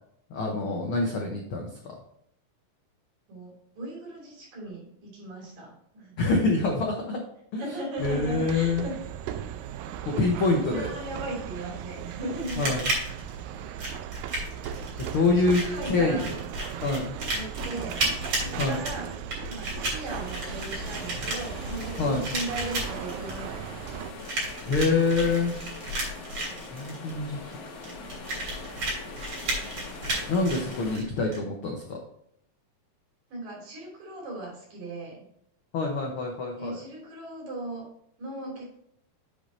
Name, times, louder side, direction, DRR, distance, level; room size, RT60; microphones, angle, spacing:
voice 1, 0.3-2.0 6.2-7.2 7.5-7.6 8.0-8.9 10.0-11.0 12.6-12.9 15.1-16.3 16.8-17.1 18.6-18.8 22.0-22.3 24.6-25.5 26.7-27.4 30.3-32.0 35.7-36.8, left 3 dB, 85° left, 0 dB, 1.1 m, -26 dB
voice 2, 3.3-6.1 7.6-9.0 10.1-10.2 10.5-12.9 15.3-16.3 17.3-18.0 18.4-19.1 19.5-23.7 33.3-35.3 36.6-37.9 38.2-38.8, right 1 dB, 70° right, -3 dB, 4.6 m, -37 dB
sound 1, 8.0-24.1, right 10 dB, 85° right, 2.3 m, -38 dB
sound 2, 12.4-31.4, right 1 dB, 45° right, 4.1 m, -33 dB
sound 3, 20.1-31.0, left 3 dB, 55° left, 2.2 m, -42 dB
7.8 x 5.2 x 4.3 m, 0.73 s
omnidirectional pair, 4.0 m